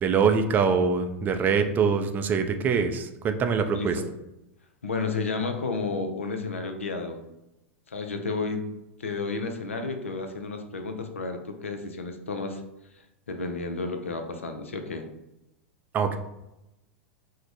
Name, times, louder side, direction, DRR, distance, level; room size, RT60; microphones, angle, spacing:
voice 1, 0.0-4.0 15.9-16.2, right 6 dB, 25° right, 7 dB, 0.3 m, -24 dB
voice 2, 3.7-4.1 4.8-7.2 7.9-8.7 9.0-12.6 13.3-15.1, left 3 dB, 80° left, 6 dB, 0.5 m, -32 dB
4.5 x 2.1 x 2.5 m, 0.92 s
figure-of-eight pair, 90°, 7 cm